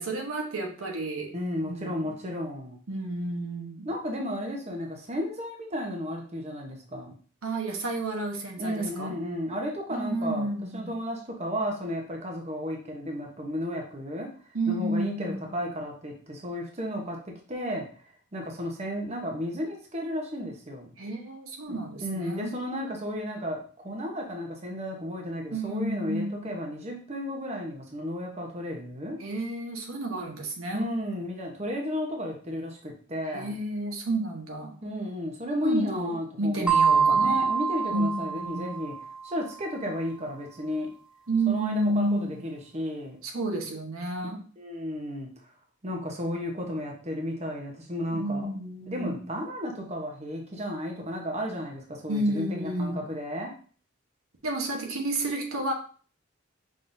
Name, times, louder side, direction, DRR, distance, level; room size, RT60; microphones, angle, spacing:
voice 1, 0.0-1.3 1.6-2.1 2.9-3.9 7.4-9.1 9.9-10.9 14.5-15.5 21.0-22.5 25.5-26.5 29.2-30.8 33.3-34.7 35.6-36.1 36.4-37.4 37.9-38.7 41.3-42.4 43.2-44.4 48.1-49.2 52.1-53.0 54.4-55.7, right 2 dB, 80° right, 2 dB, 1.0 m, -31 dB
voice 2, 1.3-2.8 3.8-7.1 8.6-10.5 10.7-14.3 14.7-17.9 18.3-20.9 21.7-29.2 30.7-33.5 34.8-38.9 39.2-40.9 41.5-43.2 44.6-45.3 45.8-48.4 48.9-53.5, equal, 30° right, 1 dB, 0.9 m, -33 dB
sound 1, 36.7-39.2, right 5 dB, 5° right, 0.5 m, -24 dB
5.4 x 3.7 x 2.6 m, 0.42 s
head